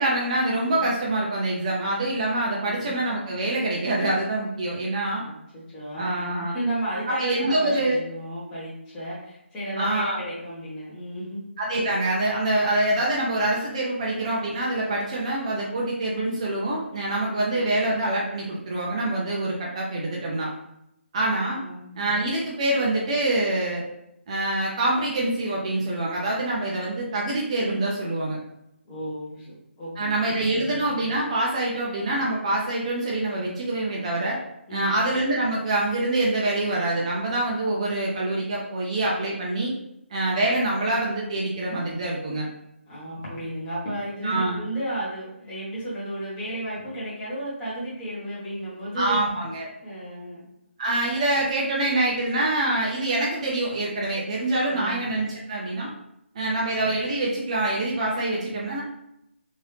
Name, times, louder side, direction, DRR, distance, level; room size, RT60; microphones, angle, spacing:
voice 1, 0.0-5.2 6.0-6.5 7.1-8.0 9.8-10.2 11.6-20.5 21.1-21.6 22.0-23.8 24.3-28.4 30.0-34.4 34.7-39.7 40.1-42.5 44.2-44.6 49.0-49.7 50.8-55.9 56.3-58.8, right 2 dB, 30° right, -4 dB, 0.6 m, -25 dB
voice 2, 2.6-3.0 5.2-11.4 17.2-17.5 21.6-21.8 28.9-30.8 34.7-35.0 42.9-49.2 49.8-50.5 54.6-55.0, right 1 dB, 15° left, -8 dB, 1.0 m, -33 dB
3.1 x 2.7 x 3.2 m, 0.81 s
figure-of-eight pair, 160°, 7 cm